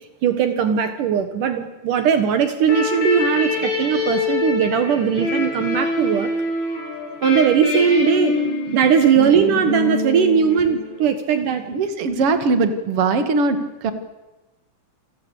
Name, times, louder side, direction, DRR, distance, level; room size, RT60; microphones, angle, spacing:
voice 1, 0.2-6.3 7.2-8.4 8.7-11.6, right 7 dB, 70° right, 8 dB, 2.9 m, -19 dB
sound 1, 2.6-11.1, left 3 dB, 35° left, 8.0 m, -25 dB
voice 2, 11.7-13.9, right 3 dB, 45° right, 8 dB, 3.0 m, -20 dB
29.0 x 22.5 x 8.4 m, 1.0 s
omnidirectional pair, 4.0 m